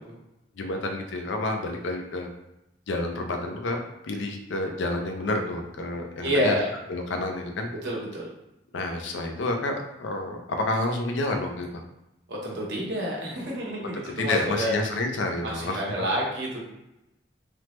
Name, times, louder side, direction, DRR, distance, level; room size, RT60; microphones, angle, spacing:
voice 1, 0.6-2.3 2.9-6.5 6.9-7.7 8.7-11.8 13.9-15.8, left 2 dB, 80° left, 3 dB, 0.5 m, -29 dB
voice 2, 6.2-6.7 7.8-8.3 12.3-14.7 15.4-16.6, equal, 60° right, -3 dB, 0.9 m, -28 dB
3.3 x 2.0 x 3.0 m, 0.89 s
head